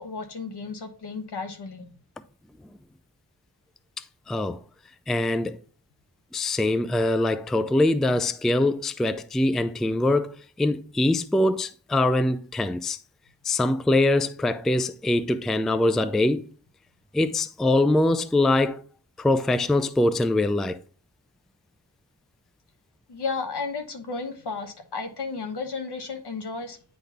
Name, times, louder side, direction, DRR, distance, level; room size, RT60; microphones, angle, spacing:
voice 1, 0.0-1.9 23.1-26.8, left 4 dB, 70° left, 1.2 m, -33 dB
voice 2, 4.3-4.6 5.1-5.6 6.3-10.3 10.6-13.0 13.4-16.4 17.1-18.8 19.2-20.8, left 2 dB, ahead, 0.3 m, -23 dB
9.6 x 4.0 x 3.5 m
wide cardioid pair, 80°, 41 cm